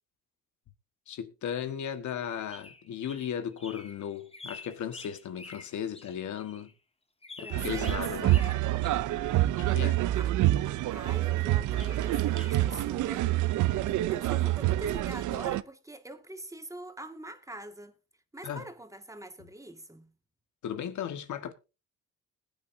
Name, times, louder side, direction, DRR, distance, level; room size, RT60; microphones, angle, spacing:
voice 1, 1.1-6.7 7.4-8.4 9.6-10.0 18.4-18.6 20.6-21.5, left 9 dB, 70° left, 1.6 m, -36 dB
sound 1, 2.2-6.7 7.2-9.9 11.5-12.7, left 3 dB, 20° left, 1.6 m, -49 dB
voice 2, 7.4-8.0 10.1-10.4 10.9-13.3 13.9-17.9 18.3-20.1, right 1 dB, 10° right, 2.0 m, -44 dB
sound 2, 7.5-15.6, right 15 dB, 80° right, 0.6 m, -27 dB
20.5 x 9.3 x 2.7 m
cardioid pair, 90°, 30 cm